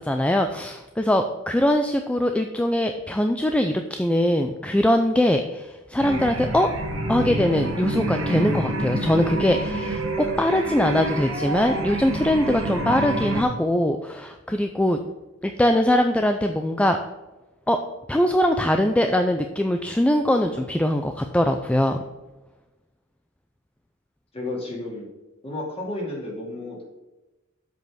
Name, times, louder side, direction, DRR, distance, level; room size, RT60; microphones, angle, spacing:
voice 1, 0.0-6.7 7.1-15.0 15.4-17.0 17.7-17.8 18.1-22.0, left 1 dB, 5° left, 5 dB, 0.4 m, -22 dB
sound 1, 6.0-13.4, right 2 dB, 70° right, 1.5 m, -28 dB
voice 2, 24.3-25.1 25.4-26.8, left 2 dB, 30° left, -2 dB, 2.6 m, -32 dB
7.7 x 5.4 x 6.2 m, 1.1 s
head